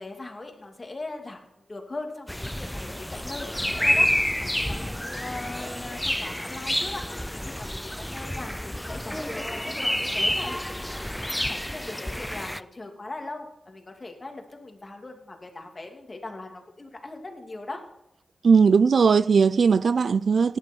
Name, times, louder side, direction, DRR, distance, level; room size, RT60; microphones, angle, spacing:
voice 1, 0.0-1.4 1.7-17.8, left 2 dB, 35° left, 2.6 m, -40 dB
sound 1, 2.3-12.6, left 1 dB, 10° left, 0.4 m, -29 dB
voice 2, 18.4-20.6, right 5 dB, 70° right, 0.4 m, -18 dB
17.5 x 10.5 x 4.6 m
cardioid pair, 70°, 0 cm